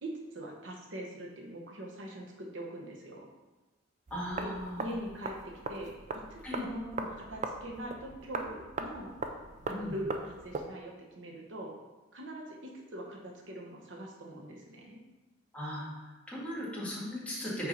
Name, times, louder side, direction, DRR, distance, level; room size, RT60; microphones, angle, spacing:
voice 1, 0.0-3.2 4.4-4.5 4.8-9.1 9.7-11.7 12.1-15.0, right 1 dB, 75° right, 0 dB, 1.1 m, -42 dB
voice 2, 4.1-4.8 6.4-6.6 9.7-9.9 15.5-17.7, equal, 5° left, -7 dB, 1.8 m, -37 dB
sound 1, 4.1-10.7, right 3 dB, 40° right, 0.4 m, -40 dB
5.8 x 4.7 x 4.0 m, 1.1 s
head